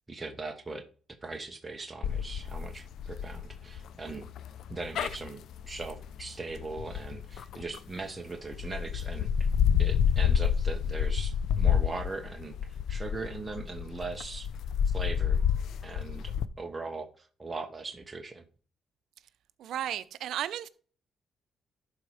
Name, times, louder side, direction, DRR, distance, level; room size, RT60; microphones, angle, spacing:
voice 1, 0.1-0.8 1.2-4.3 4.7-9.5 9.8-14.5 14.9-15.4 15.8-18.4, right 3 dB, 20° right, 1.1 m, -40 dB
sound 1, 2.0-8.0 8.5-16.5, left 8 dB, 75° left, 0.5 m, -29 dB
voice 2, 19.6-20.7, right 11 dB, 75° right, 0.6 m, -34 dB
11.5 x 4.3 x 4.9 m
cardioid pair, 90°, 0 cm